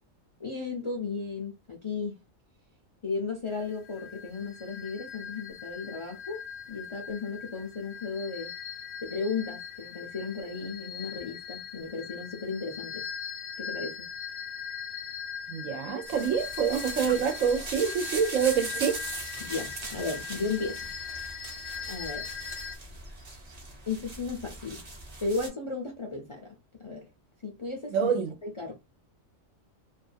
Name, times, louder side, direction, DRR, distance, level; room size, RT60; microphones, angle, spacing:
voice 1, 0.4-2.2 3.0-6.4 6.7-8.5 9.0-13.1 13.6-14.1 19.4-20.9 21.8-22.3 23.9-24.8 25.2-27.1 27.4-28.1 28.4-28.7, left 4 dB, 40° left, 0.4 m, -35 dB
sound 1, 3.5-22.8, left 7 dB, 75° left, 1.0 m, -40 dB
voice 2, 15.5-19.0 27.9-28.3, right 7 dB, 85° right, 1.1 m, -26 dB
sound 2, 16.1-25.5, right 2 dB, 35° right, 0.7 m, -40 dB
2.6 x 2.3 x 2.5 m
omnidirectional pair, 1.3 m